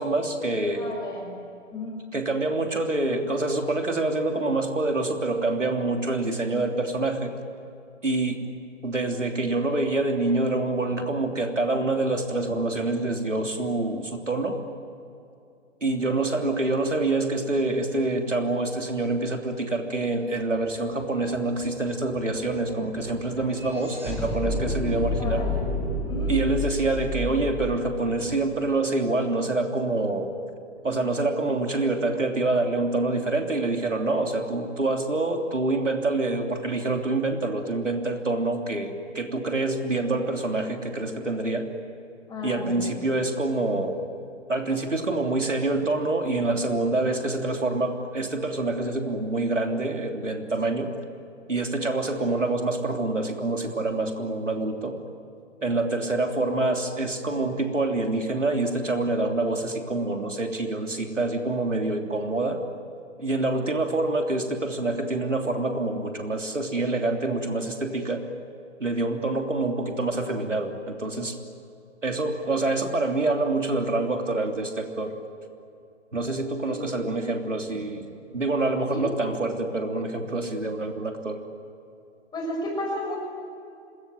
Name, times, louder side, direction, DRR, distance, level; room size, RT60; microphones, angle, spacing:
voice 1, 0.0-0.9 2.1-7.3 8.0-8.4 8.8-14.6 15.8-25.4 26.3-30.3 30.8-41.7 42.4-44.0 44.5-50.9 51.5-55.0 55.6-62.6 63.2-68.2 68.8-71.4 72.0-75.1 76.1-78.1 78.3-81.4, right 2 dB, 85° right, 4 dB, 3.3 m, -26 dB
voice 2, 0.7-1.3 1.7-2.0 25.2-25.7 26.0-26.3 42.3-42.9 76.6-76.7 78.9-79.1 82.3-83.2, left 1 dB, 10° left, 0 dB, 6.1 m, -33 dB
sound 1, 20.6-20.7 21.0-29.2, left 2 dB, 5° right, 6.3 m, -31 dB
26.5 x 21.0 x 9.3 m, 2.6 s
figure-of-eight pair, 125°, 36 cm